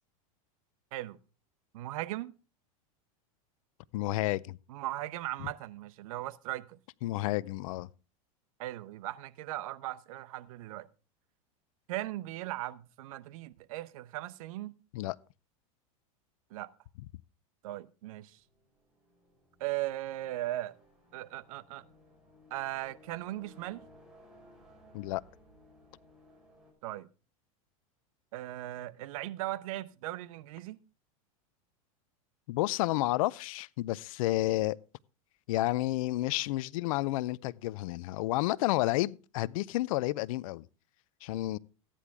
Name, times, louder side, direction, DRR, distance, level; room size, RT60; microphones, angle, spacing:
voice 1, 1.7-2.3 4.7-6.8 8.6-10.9 11.9-14.7 16.5-16.7 17.6-18.4 19.6-20.7 21.1-21.9 22.5-23.8 26.8-27.1 28.3-30.8, right 16 dB, 70° right, 0.8 m, -38 dB
voice 2, 3.9-4.6 7.0-7.9 14.9-15.2 24.9-25.2 32.5-34.8 35.5-40.6 41.2-41.6, left 18 dB, 70° left, 0.5 m, -30 dB
sound 1, 18.3-26.7, equal, 5° right, 5.5 m, -59 dB
14.5 x 10.0 x 3.6 m
supercardioid pair, 120°, 19 cm